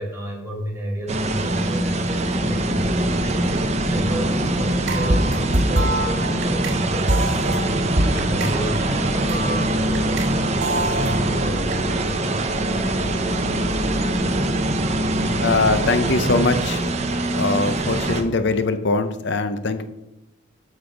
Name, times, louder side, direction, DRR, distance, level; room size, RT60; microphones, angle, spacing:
voice 1, 0.0-12.1, right 1 dB, 10° right, -3 dB, 2.1 m, -32 dB
sound 1, 1.1-18.2, right 1 dB, 35° right, 0.7 m, -23 dB
sound 2, 4.9-10.3 10.6-11.7, right 1 dB, 65° right, 2.1 m, -25 dB
voice 2, 15.4-16.8 17.3-19.9, left 3 dB, 60° left, 10 dB, 0.6 m, -21 dB
7.2 x 6.5 x 5.0 m, 0.91 s
head